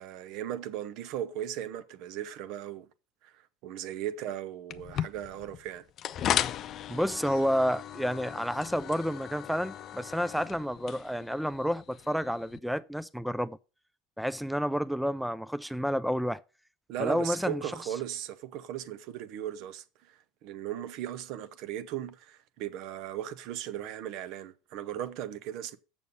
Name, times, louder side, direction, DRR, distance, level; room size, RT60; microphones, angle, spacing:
voice 1, 0.0-2.9 3.2-3.3 3.6-5.8 16.9-25.8, right 11 dB, 60° right, 0.8 m, -37 dB
sound 1, 4.7-12.6, left 10 dB, 45° left, 0.6 m, -36 dB
voice 2, 6.9-13.6 14.2-16.4 17.0-17.6, equal, ahead, 0.4 m, -30 dB
7.1 x 6.7 x 5.3 m
hypercardioid pair, 80°, 0 cm